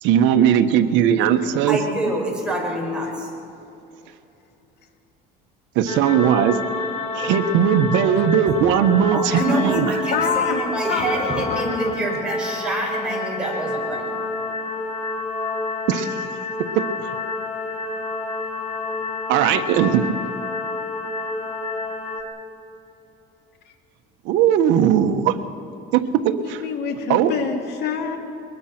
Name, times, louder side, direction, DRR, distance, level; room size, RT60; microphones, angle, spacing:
voice 1, 0.0-1.8 5.7-6.6 7.1-9.9 15.9-16.0 16.7-17.1 19.3-20.1 24.2-25.4 25.9-26.6 27.1-27.3, right 9 dB, 75° right, 8 dB, 1.3 m, -18 dB
voice 2, 1.7-3.1 8.5-8.6 9.1-14.1, right 1 dB, 5° right, -3 dB, 5.9 m, -26 dB
sound 1, 5.9-22.2, left 2 dB, 35° left, 2.8 m, -28 dB
voice 3, 10.1-10.6 10.9-12.1 26.4-28.2, left 6 dB, 60° left, 4 dB, 2.7 m, -26 dB
23.0 x 20.5 x 6.0 m, 2.9 s
cardioid pair, 130°, 19 cm